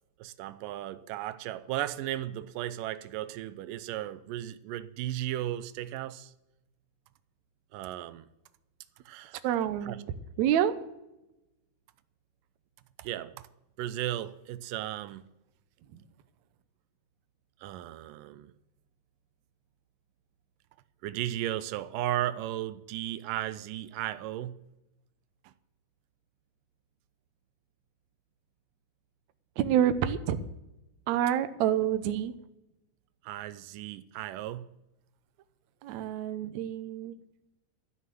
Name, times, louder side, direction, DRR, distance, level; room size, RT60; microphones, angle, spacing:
voice 1, 0.2-6.3 7.7-8.3 9.1-9.4 9.8-10.0 13.0-13.5 13.8-15.2 17.6-18.5 21.0-24.6 25.4-25.5 33.2-34.7, right 13 dB, 90° right, 2.3 m, -35 dB
voice 2, 9.4-10.0 10.4-10.8 15.9-16.0 29.6-30.4 31.1-32.3 35.8-37.2, right 10 dB, 70° right, 1.9 m, -27 dB
13.0 x 6.4 x 9.3 m
omnidirectional pair, 3.8 m